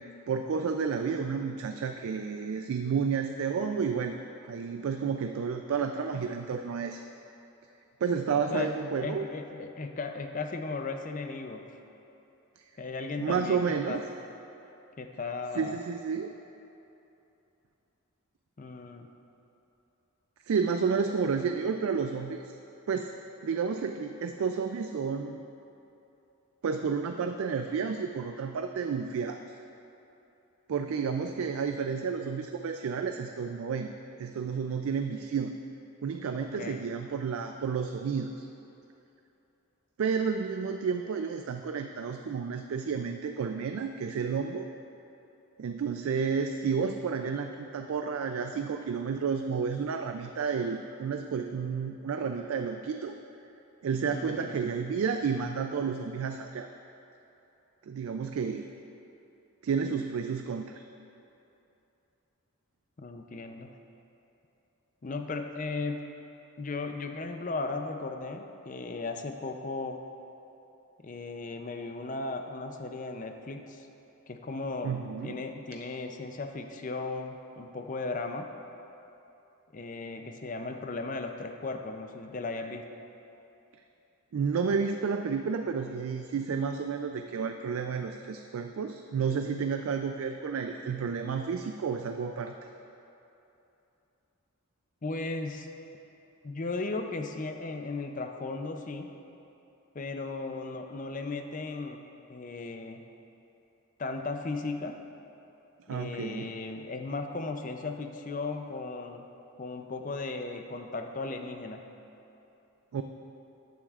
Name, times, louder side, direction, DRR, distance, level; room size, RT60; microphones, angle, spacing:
voice 1, 0.0-4.2 4.4-7.0 8.0-9.3 13.2-14.0 15.5-16.3 20.5-22.5 22.9-23.1 23.4-25.4 26.6-29.4 30.7-33.9 34.2-35.5 36.0-38.5 40.0-44.7 45.6-53.1 53.8-56.7 57.8-58.6 59.6-60.7 74.8-75.4 84.3-92.5 105.9-106.5 112.9-113.0, right 6 dB, 70° right, 6 dB, 0.3 m, -31 dB
voice 2, 9.0-11.6 12.8-14.0 15.0-15.8 18.6-19.1 30.8-31.0 36.4-36.9 54.1-54.5 63.0-63.7 65.0-66.1 66.6-70.0 71.0-73.9 74.3-78.5 79.7-82.9 95.0-95.7 96.4-99.1 99.9-102.0 102.3-103.0 104.0-105.0 105.9-109.3 109.6-111.9, left 3 dB, 35° left, 5 dB, 0.5 m, -36 dB
13.0 x 9.0 x 2.4 m, 2.9 s
head